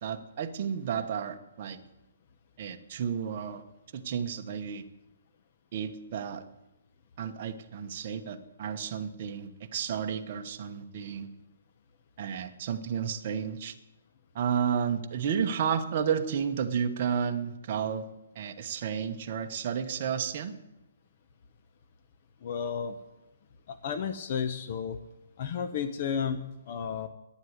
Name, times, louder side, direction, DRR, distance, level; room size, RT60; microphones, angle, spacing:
voice 1, 0.0-1.8 2.6-3.6 3.9-4.8 5.7-6.4 7.2-11.3 12.2-13.8 14.3-18.0 18.3-20.5, right 7 dB, 40° right, 5 dB, 1.1 m, -32 dB
voice 2, 22.4-22.9 23.7-25.0 25.4-27.1, left 7 dB, 40° left, 10 dB, 0.9 m, -32 dB
11.0 x 9.4 x 9.6 m, 0.95 s
hypercardioid pair, 165°, 0 cm